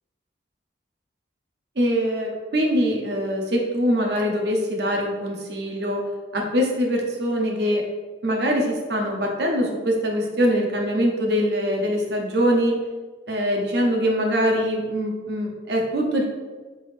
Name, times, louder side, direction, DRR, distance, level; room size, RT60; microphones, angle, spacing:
voice 1, 1.8-6.1 6.3-7.9 8.2-12.8 13.3-16.2, equal, 60° right, 0 dB, 0.8 m, -23 dB
4.0 x 3.7 x 3.3 m, 1.3 s
head